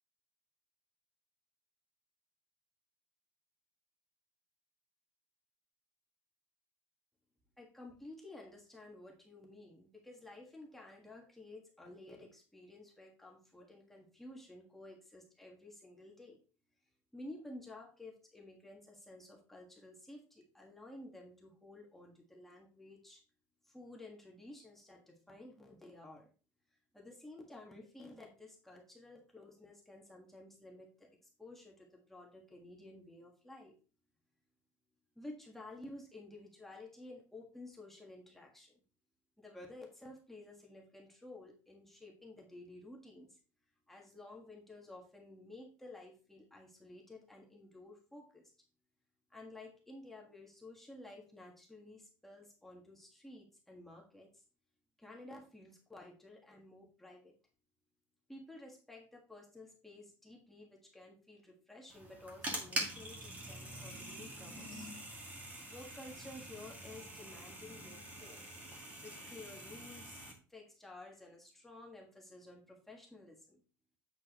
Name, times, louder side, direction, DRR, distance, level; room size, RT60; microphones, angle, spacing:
voice 1, 7.6-16.4 17.1-23.2 23.6-26.3 26.9-31.1 31.4-33.8 35.1-38.8 39.4-43.4 43.9-48.5 49.3-54.3 55.0-57.3 58.3-64.9 65.7-68.5 69.0-73.6, left 2 dB, 5° left, -1 dB, 1.5 m, -53 dB
Broken Fan, 61.9-70.3, right 1 dB, 25° right, 2.2 m, -45 dB
8.3 x 7.5 x 3.0 m, 0.36 s
cardioid pair, 170°, 7 cm